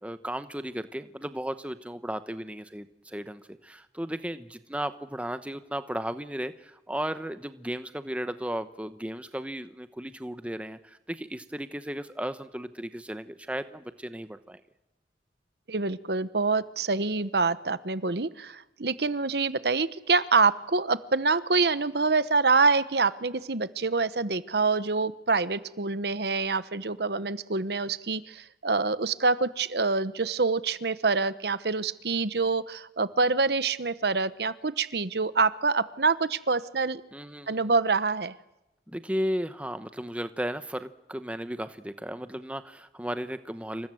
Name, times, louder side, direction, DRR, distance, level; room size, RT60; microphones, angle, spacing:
voice 1, 0.0-14.6 37.1-37.6 38.9-43.9, equal, 5° right, 11 dB, 0.9 m, -35 dB
voice 2, 15.7-37.0 37.5-38.4, right 4 dB, 65° right, 15 dB, 1.0 m, -26 dB
28.0 x 25.0 x 7.8 m, 0.94 s
head